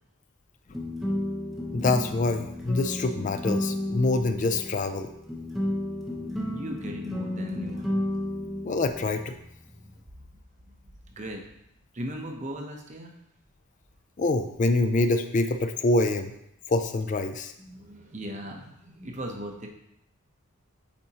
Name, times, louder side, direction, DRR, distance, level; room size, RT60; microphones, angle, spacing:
sound 1, 0.7-10.0, left 1 dB, ahead, 0.8 m, -32 dB
voice 1, 1.7-5.1 8.6-9.4 14.2-16.3 16.7-17.5, left 2 dB, 35° left, 8 dB, 0.3 m, -25 dB
voice 2, 6.4-7.9 9.8-9.9 11.2-11.4 11.9-13.1 17.6-19.7, equal, 30° right, 2 dB, 0.7 m, -37 dB
8.5 x 4.1 x 2.9 m, 0.80 s
head